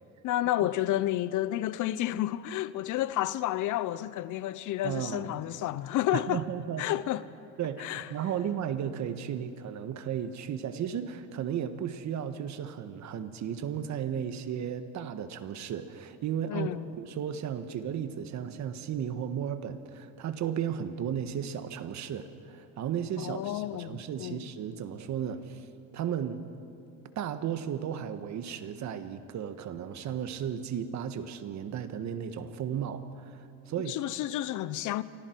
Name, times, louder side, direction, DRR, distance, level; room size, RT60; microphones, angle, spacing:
voice 1, 0.2-6.4 6.8-7.2 7.8-8.1 16.5-16.8 23.2-24.5 33.9-35.0, left 14 dB, 55° left, 0.8 m, -30 dB
voice 2, 4.8-5.3 6.1-7.0 7.6-25.6 25.9-26.4 27.1-34.0, right 8 dB, 50° right, 1.5 m, -34 dB
29.0 x 24.5 x 4.6 m
supercardioid pair, 105°, 36 cm